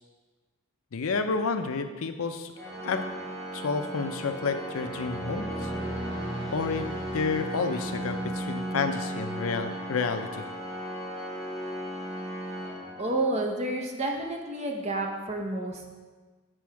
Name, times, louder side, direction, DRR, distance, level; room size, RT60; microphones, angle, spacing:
voice 1, 0.9-2.5 2.8-3.0 3.5-5.7 6.5-6.9 7.1-10.4, left 4 dB, 70° left, 7 dB, 0.5 m, -30 dB
Organ, 2.5-13.5, right 1 dB, 50° right, 2.1 m, -36 dB
sound 1, 4.7-9.0, equal, ahead, 1.4 m, -39 dB
voice 2, 13.0-16.0, right 2 dB, 30° right, 1 dB, 0.8 m, -30 dB
7.6 x 4.2 x 4.7 m, 1.4 s
head